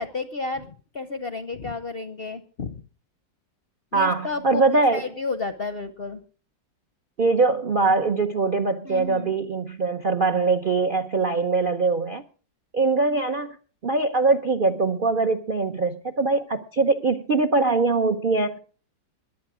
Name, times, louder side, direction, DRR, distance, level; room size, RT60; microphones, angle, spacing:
voice 1, 0.0-2.8 3.9-4.6 4.9-6.2 8.8-9.3, left 3 dB, 50° left, 9 dB, 0.7 m, -32 dB
voice 2, 3.9-5.0 7.2-12.2 12.7-13.6 13.8-18.6, right 3 dB, 55° right, 8 dB, 0.6 m, -22 dB
21.0 x 8.4 x 4.9 m, 0.40 s
omnidirectional pair, 2.0 m